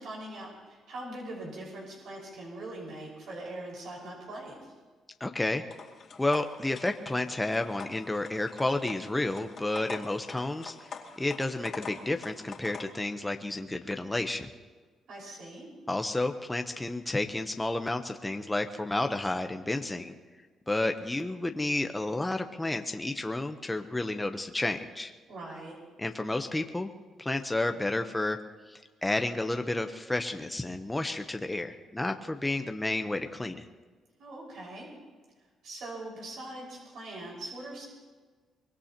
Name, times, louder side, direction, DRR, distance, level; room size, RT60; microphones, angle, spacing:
voice 1, 0.0-4.7 15.1-15.7 25.3-25.7 34.2-34.9 35.6-37.8, right 1 dB, 70° right, -3 dB, 5.4 m, -42 dB
voice 2, 5.2-5.6 6.2-10.9 11.2-14.5 15.9-20.1 20.7-25.1 26.0-26.9 27.2-28.4 28.7-33.6, left 2 dB, 10° left, 6 dB, 0.9 m, -31 dB
Coffee maker, 5.7-12.8, left 5 dB, 55° left, 2.3 m, -45 dB
24.0 x 20.0 x 3.0 m, 1.4 s
cardioid pair, 90°, 0 cm